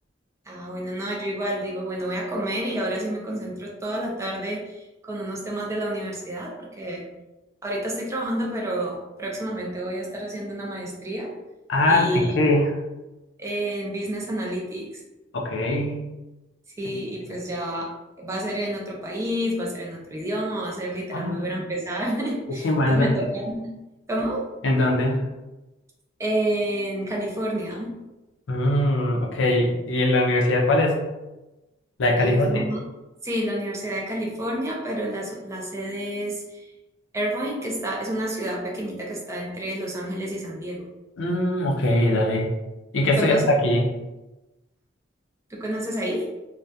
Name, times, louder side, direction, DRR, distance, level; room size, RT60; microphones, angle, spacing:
voice 1, 0.5-7.0 7.6-11.3 11.9-12.4 13.4-15.0 16.8-23.7 24.1-24.4 26.2-27.9 32.2-32.8 33.2-36.6 37.1-40.9 43.2-43.6 45.5-46.3, right 1 dB, 15° right, -2 dB, 0.3 m, -29 dB
voice 2, 11.7-12.7 15.3-16.1 17.2-17.3 21.1-21.5 22.6-23.1 24.6-25.2 28.5-31.0 32.0-32.7 41.2-42.5 42.9-43.9, left 1 dB, 75° left, 0 dB, 0.5 m, -21 dB
2.3 x 2.1 x 2.6 m, 1.0 s
head